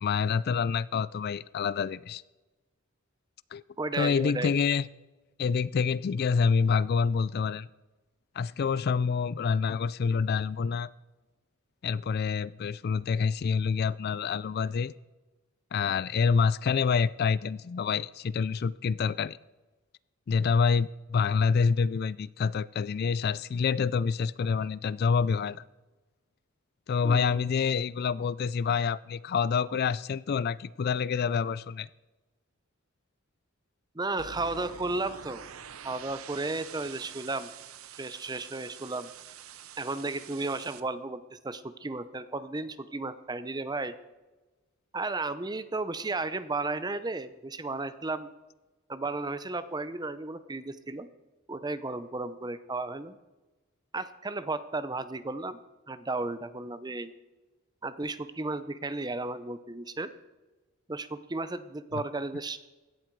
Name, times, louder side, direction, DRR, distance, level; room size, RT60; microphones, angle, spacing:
voice 1, 0.0-2.2 3.5-3.6 4.0-4.8 5.4-7.7 8.4-10.9 11.8-14.9 15.7-19.4 20.3-25.6 26.9-31.9 61.9-62.0, left 5 dB, 50° left, 19 dB, 0.3 m, -27 dB
voice 2, 3.8-4.5 27.0-27.5 33.9-35.5 35.8-37.5 38.0-39.1 39.8-43.9 44.9-48.3 48.9-51.1 51.5-53.2 53.9-55.6 55.9-57.1 57.8-60.1 60.9-62.6, right 3 dB, 20° right, 13 dB, 0.7 m, -34 dB
sound 1, 34.2-40.8, right 8 dB, 85° right, 0.8 m, -46 dB
16.5 x 11.5 x 4.7 m, 1.2 s
head